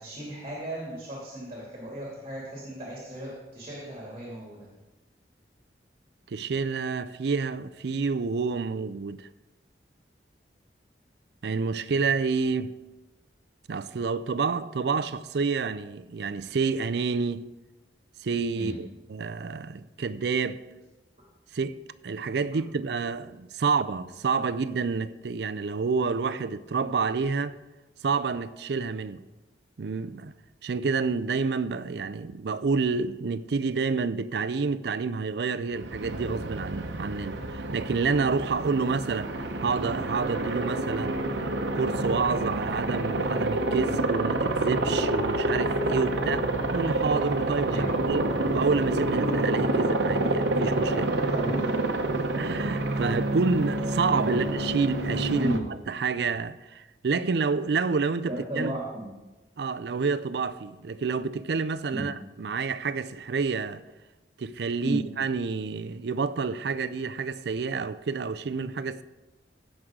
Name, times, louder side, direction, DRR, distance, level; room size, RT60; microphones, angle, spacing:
voice 1, 0.0-4.7 18.5-18.8 47.7-47.9 51.3-51.6 54.3-54.4 55.4-55.6 58.3-59.1 61.9-62.1 64.8-65.0, right 1 dB, 35° right, 2.6 m, -34 dB
voice 2, 6.3-9.3 11.4-12.8 13.7-17.5 18.2-20.6 21.5-21.8 22.0-27.5 28.0-29.2 29.8-30.3 30.6-41.2 41.7-48.3 48.5-51.1 52.3-55.5 55.9-58.8 59.6-62.1 62.4-63.8 64.4-69.0, right 4 dB, 70° right, 0.4 m, -28 dB
Aircraft, 35.7-55.6, right 2 dB, 85° right, 0.9 m, -28 dB
16.5 x 6.2 x 3.7 m
head